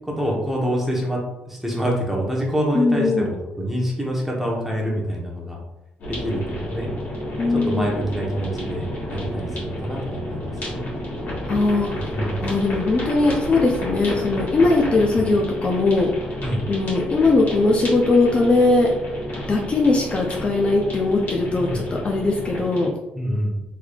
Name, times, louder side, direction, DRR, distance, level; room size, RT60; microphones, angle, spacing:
voice 1, 0.0-1.2 1.5-5.6 6.2-6.9 7.5-10.8 12.0-12.5 16.4-16.6 21.6-21.8 23.1-23.6, equal, 5° right, -3 dB, 1.0 m, -26 dB
voice 2, 2.7-3.3 7.4-7.9 11.5-11.9 12.4-16.1 16.7-18.9 19.5-22.9, left 3 dB, 30° left, -1 dB, 0.5 m, -20 dB
sound 1, 6.0-22.9, equal, 60° left, 1.5 m, -31 dB
3.5 x 3.2 x 2.3 m, 0.91 s
cardioid pair, 120°, 4 cm